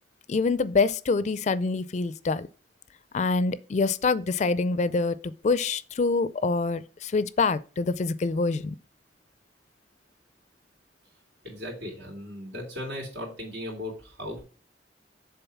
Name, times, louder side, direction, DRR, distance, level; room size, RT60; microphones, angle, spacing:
voice 1, 0.3-2.5 3.1-8.8, left 4 dB, 40° left, 0.4 m, -25 dB
voice 2, 11.4-14.4, left 1 dB, 80° right, 3.3 m, -37 dB
7.0 x 3.8 x 5.7 m
head